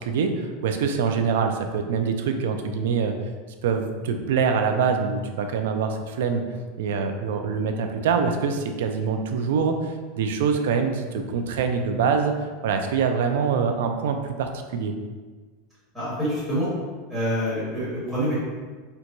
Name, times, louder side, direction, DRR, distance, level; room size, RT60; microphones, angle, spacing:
voice 1, 0.0-3.1 3.6-6.4 6.8-12.3 12.6-14.9, right 6 dB, 85° right, 5 dB, 0.4 m, -24 dB
voice 2, 15.9-16.7 17.1-18.3, equal, ahead, -12 dB, 1.2 m, -26 dB
4.4 x 2.2 x 2.6 m, 1.4 s
supercardioid pair, 175°, 0 cm